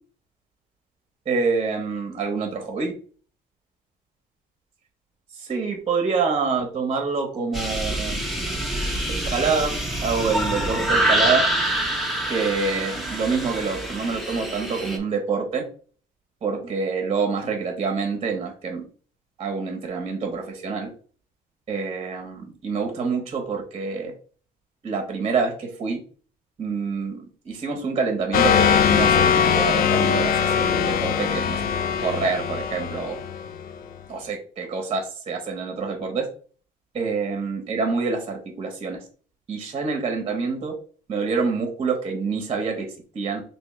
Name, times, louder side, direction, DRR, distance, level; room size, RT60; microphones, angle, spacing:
voice 1, 1.3-2.9 5.3-8.2 9.1-11.4 12.3-15.7 16.4-18.8 19.4-20.9 21.7-24.1 24.8-26.0 26.6-31.6 32.0-33.2 34.1-36.3 36.9-39.0 39.5-40.7 41.1-42.9 43.1-43.4, right 4 dB, 35° right, 3 dB, 0.9 m, -26 dB
sound 1, 7.5-15.0, right 1 dB, ahead, 0.8 m, -26 dB
sound 2, 28.3-33.7, left 7 dB, 60° left, 0.5 m, -21 dB
3.4 x 3.0 x 3.1 m, 0.43 s
cardioid pair, 110°, 17 cm